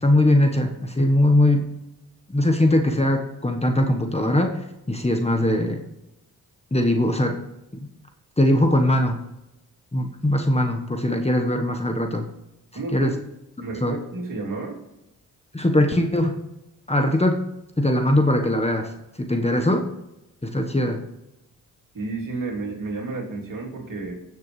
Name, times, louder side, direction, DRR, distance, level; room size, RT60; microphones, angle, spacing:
voice 1, 0.0-1.7 2.3-4.6 4.9-5.8 6.7-7.4 8.4-9.2 9.9-12.3 12.9-13.1 13.8-14.0 15.5-16.4 16.9-17.4 17.8-18.9 19.2-19.9 20.4-21.0, left 1 dB, 15° left, 4 dB, 1.3 m, -20 dB
voice 2, 12.7-13.1 13.6-14.8 21.9-24.1, right 3 dB, 55° right, -1 dB, 3.2 m, -31 dB
15.5 x 7.0 x 3.3 m, 0.92 s
supercardioid pair, 45°, 39 cm